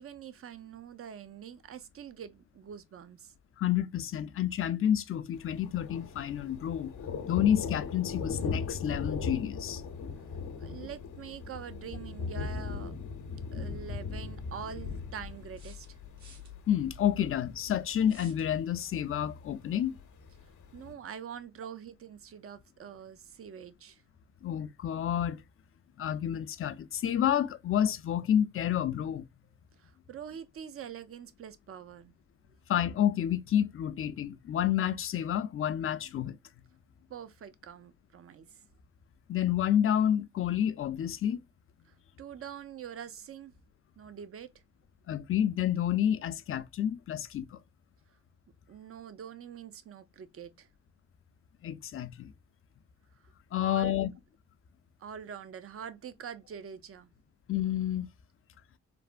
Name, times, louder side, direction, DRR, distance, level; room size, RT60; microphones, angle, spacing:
voice 1, 0.0-3.3 10.6-12.9 13.5-16.0 20.7-24.0 29.8-32.1 37.1-38.6 41.9-43.5 44.0-44.5 48.7-50.7 53.6-54.0 55.0-57.1, right 8 dB, 45° right, 0.5 m, -45 dB
voice 2, 3.6-6.9 7.3-9.8 16.7-20.0 24.4-25.4 26.0-29.2 32.7-36.4 39.3-41.4 45.1-47.6 51.6-52.3 53.5-54.1 57.5-58.1, left 10 dB, 45° left, 0.4 m, -29 dB
Thunder, 5.3-20.9, left 4 dB, 75° left, 0.7 m, -39 dB
sound 1, 15.5-16.5 18.0-18.5, right 4 dB, 60° right, 1.1 m, -55 dB
3.3 x 2.1 x 2.4 m
cardioid pair, 60°, 31 cm